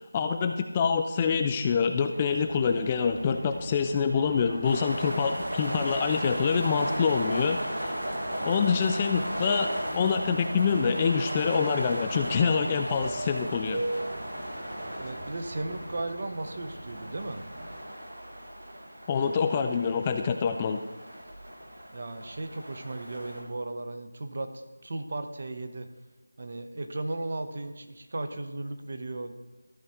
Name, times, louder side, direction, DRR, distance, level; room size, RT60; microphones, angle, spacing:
voice 1, 0.0-7.9 8.4-13.8 19.1-20.8, left 6 dB, 20° left, 6 dB, 0.4 m, -26 dB
sound 1, 2.1-17.8, right 1 dB, 30° right, 1.8 m, -42 dB
sound 2, 4.6-23.4, equal, 80° right, 2.3 m, -36 dB
voice 2, 15.0-17.4 21.9-25.9 26.4-29.3, right 2 dB, 45° right, 7 dB, 0.9 m, -36 dB
14.0 x 5.0 x 4.3 m, 1.1 s
figure-of-eight pair, 170°, 0 cm